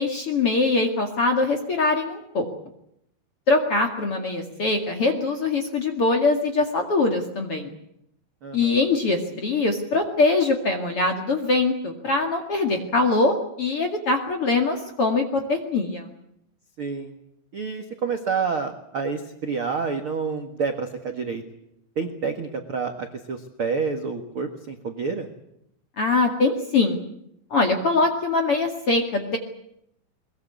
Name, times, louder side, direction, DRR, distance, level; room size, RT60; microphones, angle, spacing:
voice 1, 0.0-2.5 3.5-7.7 8.5-16.1 26.0-27.0 27.5-29.4, left 3 dB, 45° left, 4 dB, 2.1 m, -22 dB
voice 2, 8.4-8.8 16.8-17.1 17.5-21.4 21.9-25.3, right 5 dB, 65° right, 5 dB, 1.3 m, -28 dB
22.5 x 21.5 x 8.2 m, 0.76 s
omnidirectional pair, 5.2 m